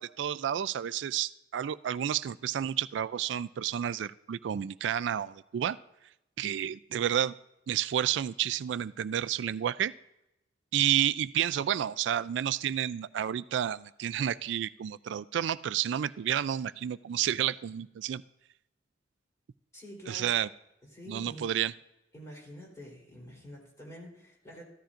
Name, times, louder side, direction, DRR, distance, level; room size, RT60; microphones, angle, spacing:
voice 1, 0.0-5.8 6.4-7.3 7.7-9.9 10.7-18.2 20.1-20.5 21.1-21.7, right 10 dB, 70° right, 17 dB, 0.3 m, -30 dB
voice 2, 19.7-20.3 20.9-21.5 22.1-24.6, equal, 15° left, -2 dB, 3.6 m, -47 dB
15.0 x 13.0 x 2.5 m, 0.88 s
head